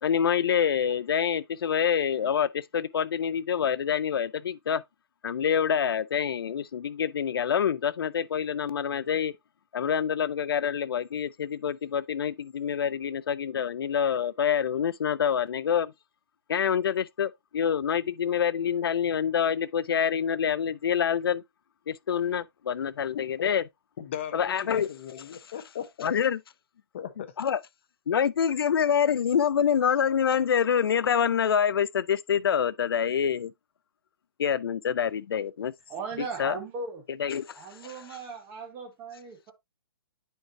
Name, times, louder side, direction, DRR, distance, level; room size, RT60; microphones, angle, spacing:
voice 1, 0.0-4.8 5.2-9.3 9.7-15.9 16.5-21.4 21.9-23.6 24.3-24.9 26.0-26.4 27.4-27.6 28.1-33.5 34.4-35.7 36.4-36.6 37.2-37.6, left 8 dB, 65° left, 0.5 m, -26 dB
voice 2, 24.0-26.1 26.9-27.3, left 9 dB, 30° left, 0.7 m, -38 dB
voice 3, 35.9-37.1 37.5-39.5, right 4 dB, 10° right, 1.2 m, -38 dB
9.3 x 4.5 x 2.7 m
hypercardioid pair, 180°, 13 cm